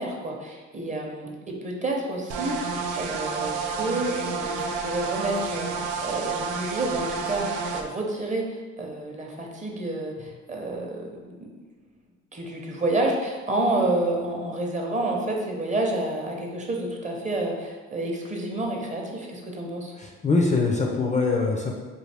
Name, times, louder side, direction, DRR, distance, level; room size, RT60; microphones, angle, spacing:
voice 1, 0.0-11.5 12.3-19.9, right 2 dB, 25° right, 0 dB, 0.7 m, -29 dB
sound 1, 2.3-7.8, right 4 dB, 90° right, 0.5 m, -30 dB
voice 2, 20.0-21.8, left 3 dB, 25° left, 0 dB, 0.4 m, -23 dB
4.6 x 2.3 x 3.4 m, 1.3 s
cardioid pair, 90°, 30 cm